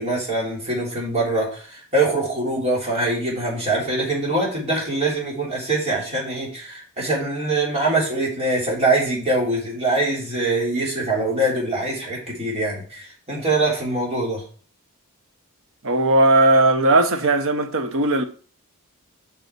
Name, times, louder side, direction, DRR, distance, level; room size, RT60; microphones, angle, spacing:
voice 1, 0.0-14.4, right 2 dB, 30° right, 3.5 m, -23 dB
voice 2, 15.8-18.2, right 2 dB, 65° right, 1.0 m, -17 dB
8.3 x 5.4 x 4.5 m
head